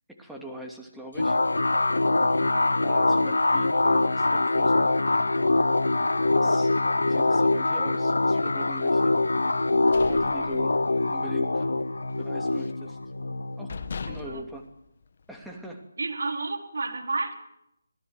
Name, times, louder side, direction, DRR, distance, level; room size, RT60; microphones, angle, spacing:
voice 1, 0.1-1.4 2.8-5.0 6.3-6.7 7.0-9.2 10.0-10.8 11.1-11.6 12.2-13.0 13.6-14.7 15.3-15.8, right 1 dB, ahead, -1 dB, 2.8 m, -42 dB
sound 1, 1.2-14.4, left 2 dB, 80° left, 1.2 m, -24 dB
voice 2, 2.3-2.8 14.1-14.4 16.0-17.3, right 3 dB, 70° right, 4 dB, 4.4 m, -32 dB
sound 2, 9.6-11.2 11.5-11.8 12.1-12.9 13.3-13.4 13.7-15.5, left 5 dB, 50° left, 1.6 m, -40 dB
25.5 x 18.0 x 7.9 m, 0.76 s
figure-of-eight pair, 155°, 0 cm